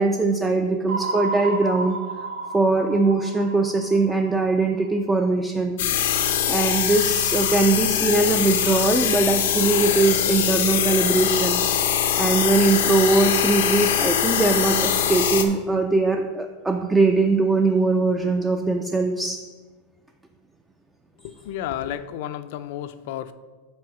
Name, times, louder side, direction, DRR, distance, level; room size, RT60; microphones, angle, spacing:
voice 1, 0.0-2.0 2.5-5.8 6.5-11.6 12.2-19.4, right 3 dB, 5° right, 4 dB, 0.3 m, -21 dB
sound 1, 0.9-5.1, right 3 dB, 70° right, 0.8 m, -31 dB
sound 2, 5.8-15.5, left 9 dB, 85° left, 0.7 m, -22 dB
voice 2, 21.2-23.3, left 11 dB, 60° left, 12 dB, 0.4 m, -32 dB
6.2 x 4.7 x 5.9 m, 1.3 s
supercardioid pair, 160°, 0 cm